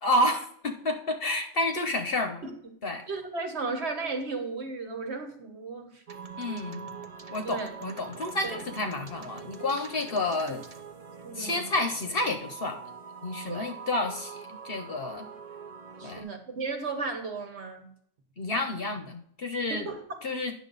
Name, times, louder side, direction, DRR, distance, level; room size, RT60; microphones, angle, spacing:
voice 1, 0.0-2.4 2.8-3.0 6.4-6.9 7.3-10.6 11.4-12.8 13.2-15.3 16.0-16.3 18.4-19.9 20.2-20.5, left 2 dB, 50° left, 6 dB, 1.0 m, -30 dB
voice 2, 3.1-6.0 7.4-7.7 8.4-8.6 11.2-11.7 13.4-13.7 16.0-17.9 19.7-20.2, right 4 dB, 55° right, 5 dB, 1.4 m, -35 dB
sound 1, 6.1-16.2, right 5 dB, 35° right, 0.7 m, -44 dB
9.5 x 6.6 x 4.0 m, 0.67 s
omnidirectional pair, 1.4 m